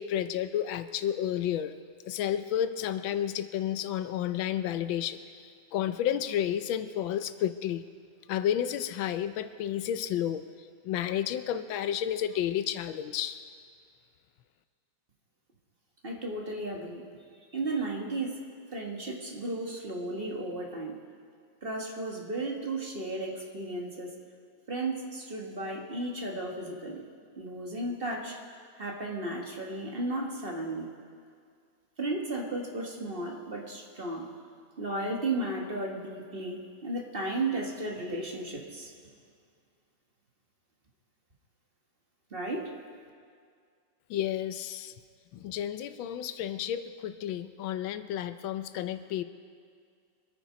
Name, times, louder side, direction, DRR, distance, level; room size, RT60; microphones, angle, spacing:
voice 1, 0.0-1.7 2.1-5.2 5.7-7.8 8.3-10.4 10.8-13.5 44.1-44.9 45.3-49.2, left 10 dB, 80° left, 11 dB, 1.4 m, -31 dB
voice 2, 16.0-17.1 17.5-18.4 18.7-21.0 21.6-24.1 24.7-27.0 27.4-28.4 28.8-30.9 32.0-34.3 34.8-38.9 42.3-42.7, right 2 dB, 30° right, 0 dB, 1.6 m, -34 dB
24.5 x 9.0 x 5.2 m, 2.2 s
omnidirectional pair, 2.1 m